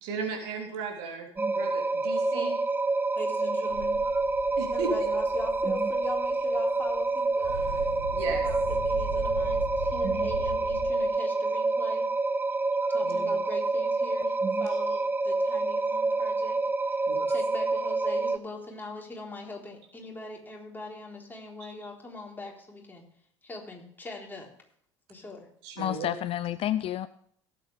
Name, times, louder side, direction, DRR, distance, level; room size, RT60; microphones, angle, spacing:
voice 1, 0.0-2.5 4.6-5.1 8.1-8.4 13.0-13.3 17.1-17.3 25.6-26.1, right 4 dB, 65° right, 2 dB, 2.9 m, -36 dB
sound 1, 1.4-18.4, right 3 dB, 15° right, 0.6 m, -27 dB
voice 2, 1.6-2.6 3.2-4.1 4.7-7.6 8.2-12.1 12.9-23.0 23.4-24.5 25.1-25.5, left 2 dB, 15° left, -1 dB, 4.0 m, -42 dB
sound 2, 3.7-6.5 6.9-7.0 7.3-11.1, right 1 dB, 80° right, 5.1 m, -38 dB
voice 3, 25.8-27.1, left 12 dB, 40° left, 16 dB, 0.5 m, -29 dB
17.5 x 8.2 x 3.4 m, 0.66 s
figure-of-eight pair, 60°, 15 cm